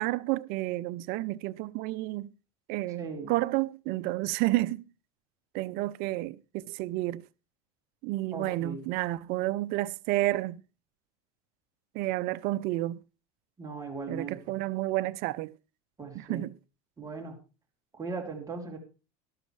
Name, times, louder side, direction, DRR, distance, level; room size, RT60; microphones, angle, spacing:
voice 1, 0.0-2.3 2.7-4.8 5.5-7.2 8.0-10.6 11.9-13.0 14.1-15.5 16.1-16.5, right 17 dB, 55° right, 0.6 m, -30 dB
voice 2, 3.0-3.3 8.3-8.8 13.6-14.5 16.0-16.5 17.0-17.4 17.9-18.8, right 4 dB, 20° right, 3.4 m, -38 dB
12.5 x 12.5 x 3.2 m
supercardioid pair, 115°, 19 cm